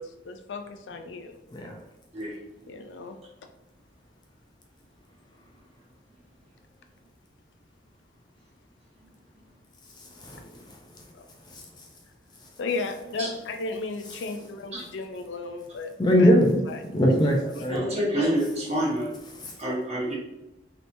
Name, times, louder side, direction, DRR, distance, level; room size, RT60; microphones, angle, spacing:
voice 1, 0.0-1.4 2.7-3.2 11.1-11.3 12.6-15.9 16.2-16.3 16.7-17.1, left 3 dB, 85° left, 7 dB, 0.4 m, -34 dB
voice 2, 10.0-11.1 11.5-11.9 14.1-14.2 16.0-16.6 16.9-17.9 19.3-19.5, equal, 25° left, 0 dB, 0.5 m, -23 dB
voice 3, 17.7-19.1 19.6-20.1, equal, 35° right, -6 dB, 1.2 m, -27 dB
3.3 x 2.9 x 2.6 m, 0.92 s
head